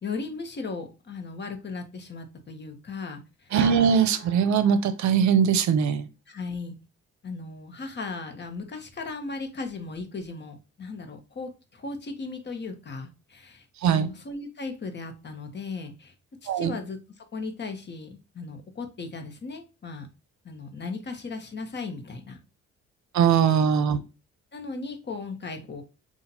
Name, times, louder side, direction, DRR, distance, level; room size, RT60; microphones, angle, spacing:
voice 1, 0.0-3.5 6.3-6.7 7.2-13.7 13.9-16.1 16.4-20.1 20.4-22.4 23.2-23.7 24.5-25.8, left 4 dB, 35° left, 6 dB, 1.0 m, -37 dB
sound 1, 3.5-5.3, right 6 dB, 45° right, 1.1 m, -37 dB
voice 2, 3.5-6.1 13.8-14.1 16.5-16.7 23.1-24.0, right 7 dB, 70° right, 12 dB, 0.6 m, -21 dB
5.6 x 2.5 x 2.8 m, 0.29 s
cardioid pair, 90°, 30 cm